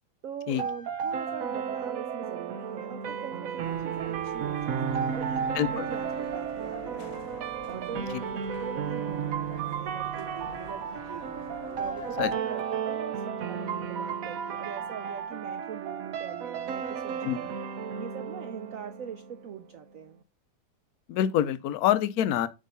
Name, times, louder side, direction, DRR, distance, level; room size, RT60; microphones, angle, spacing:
voice 1, 0.2-7.4 7.7-11.4 11.8-17.5 17.9-20.2, right 8 dB, 85° right, 0.7 m, -42 dB
sound 1, 0.6-19.5, right 7 dB, 60° right, 0.9 m, -33 dB
sound 2, 3.6-12.4, left 8 dB, 85° left, 1.7 m, -47 dB
voice 2, 5.5-5.9 8.1-8.2 12.2-12.3 17.2-17.4 21.1-22.5, left 11 dB, 70° left, 0.9 m, -26 dB
7.6 x 3.7 x 5.5 m
omnidirectional pair, 2.2 m